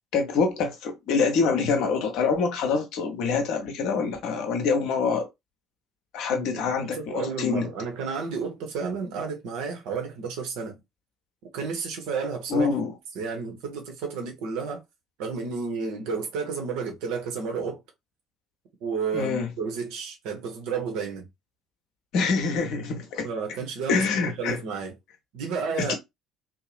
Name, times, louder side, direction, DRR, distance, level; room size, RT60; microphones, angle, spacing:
voice 1, 0.1-5.3 6.1-7.7 12.5-12.9 19.1-19.5 22.1-23.3 23.9-24.6 25.8-25.9, left 5 dB, 55° left, 0.7 m, -25 dB
voice 2, 6.3-6.6 6.9-10.8 11.5-12.7 13.1-14.8 15.2-17.8 18.8-21.3 23.2-24.0 24.4-24.9 25.3-25.9, right 5 dB, 60° right, 0.8 m, -31 dB
2.7 x 2.0 x 3.1 m
figure-of-eight pair, 55°, 0 cm